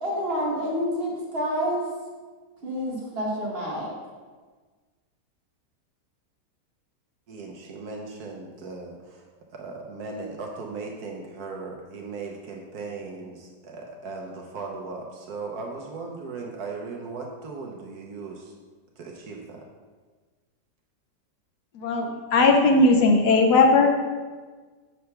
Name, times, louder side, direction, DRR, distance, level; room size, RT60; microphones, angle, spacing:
voice 1, 0.0-1.9 2.6-3.9, equal, 35° right, -4 dB, 1.4 m, -28 dB
voice 2, 7.3-9.2 9.5-18.5 19.0-19.7, right 3 dB, 65° right, 0 dB, 1.1 m, -37 dB
voice 3, 21.7-23.9, left 3 dB, 70° left, 3 dB, 1.1 m, -18 dB
6.7 x 3.2 x 5.6 m, 1.4 s
omnidirectional pair, 1.9 m